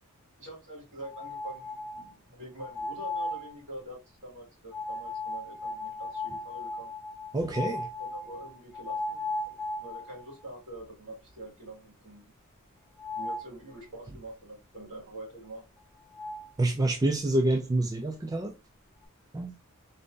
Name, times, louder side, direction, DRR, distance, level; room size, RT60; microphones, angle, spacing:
voice 1, 0.4-6.9 8.0-9.3 9.8-12.3 13.1-15.6, right 1 dB, 60° right, 2.4 m, -45 dB
sound 1, 1.0-2.1 2.6-3.5 4.7-10.3 10.8-10.9 11.3-11.4 13.0-13.5 15.8-15.9 16.1-16.5, left 2 dB, 10° left, 1.2 m, -36 dB
voice 2, 7.3-7.8 16.6-18.5 19.3-19.5, right 2 dB, 15° right, 0.3 m, -27 dB
3.8 x 3.6 x 2.6 m
head